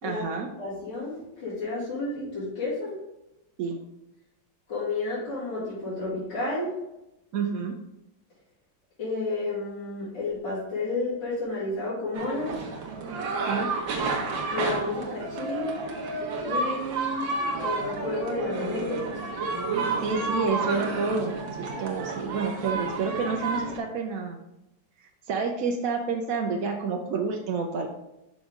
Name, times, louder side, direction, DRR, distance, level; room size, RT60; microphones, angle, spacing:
voice 1, 0.0-0.5 3.6-3.8 7.3-7.7 13.5-13.7 20.0-24.4 25.3-27.9, right 4 dB, 65° right, 2 dB, 0.9 m, -29 dB
voice 2, 0.6-3.0 4.7-6.7 9.0-12.6 14.5-15.7 16.4-17.3 17.6-19.2, left 2 dB, 70° left, -11 dB, 3.2 m, -31 dB
sound 1, 12.1-23.8, right 3 dB, 85° right, 1.7 m, -30 dB
6.2 x 5.2 x 3.6 m, 0.89 s
omnidirectional pair, 2.0 m